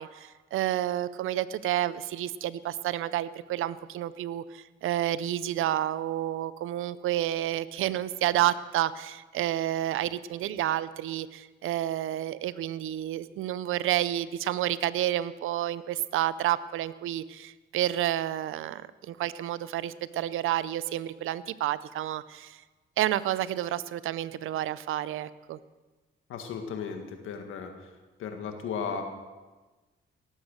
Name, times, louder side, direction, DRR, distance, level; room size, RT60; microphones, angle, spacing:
voice 1, 0.0-22.6 23.0-25.6, right 13 dB, 90° right, 17 dB, 0.6 m, -30 dB
voice 2, 26.3-27.9 28.2-29.0, left 6 dB, 85° left, 5 dB, 1.8 m, -35 dB
18.5 x 8.2 x 6.4 m, 1.2 s
cardioid pair, 65°, 20 cm